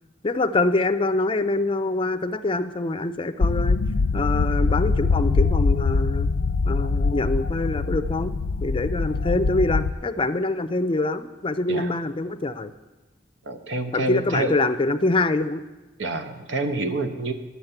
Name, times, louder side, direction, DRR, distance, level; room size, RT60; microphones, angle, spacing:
voice 1, 0.2-3.8 4.1-6.3 6.7-8.3 8.6-12.7 13.9-15.6, left 2 dB, 30° left, 11 dB, 0.5 m, -25 dB
sound 1, 3.4-9.9, left 4 dB, 85° left, 0.5 m, -23 dB
voice 2, 13.4-14.5 16.0-17.3, right 2 dB, 80° right, 8 dB, 1.0 m, -27 dB
11.0 x 7.2 x 7.9 m, 1.2 s
head